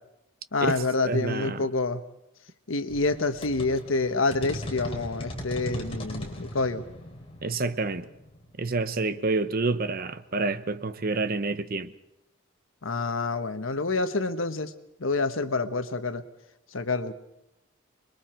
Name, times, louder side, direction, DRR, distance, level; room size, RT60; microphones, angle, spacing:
voice 1, 0.5-2.0 2.7-6.8 12.8-14.7 15.0-16.2 16.7-17.1, left 3 dB, 75° left, 1.3 m, -27 dB
voice 2, 1.0-1.7 7.4-8.1 8.6-11.9, right 3 dB, 45° right, 0.9 m, -28 dB
sound 1, 2.9-9.3, equal, 30° left, 3.8 m, -39 dB
26.5 x 22.0 x 4.5 m
head